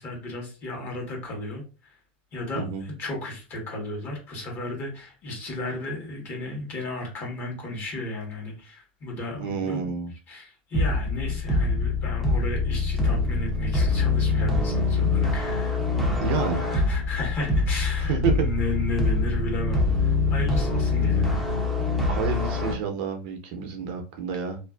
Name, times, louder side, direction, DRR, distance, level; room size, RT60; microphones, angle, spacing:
voice 1, 0.0-2.0 2.3-9.9 10.3-21.5, left 1 dB, 35° left, 1.1 m, -34 dB
voice 2, 9.4-10.1 16.2-16.6 18.1-18.3 22.0-24.6, right 6 dB, 60° right, 0.7 m, -29 dB
sound 1, 10.7-22.7, left 3 dB, ahead, 0.6 m, -24 dB
2.5 x 2.3 x 2.3 m
supercardioid pair, 140°, 6 cm